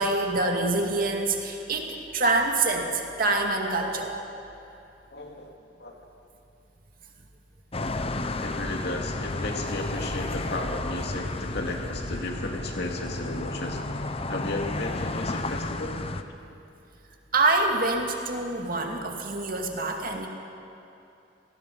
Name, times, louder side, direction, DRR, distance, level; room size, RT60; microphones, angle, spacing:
voice 1, 0.0-4.2 17.3-20.3, right 2 dB, 55° right, 2 dB, 2.3 m, -26 dB
voice 2, 5.1-5.5 5.8-5.9 8.4-14.0 14.3-16.0, left 2 dB, 65° left, 1 dB, 2.6 m, -34 dB
sound 1, 7.7-16.2, left 2 dB, 35° left, 0.9 m, -32 dB
27.0 x 18.0 x 5.6 m, 2.8 s
head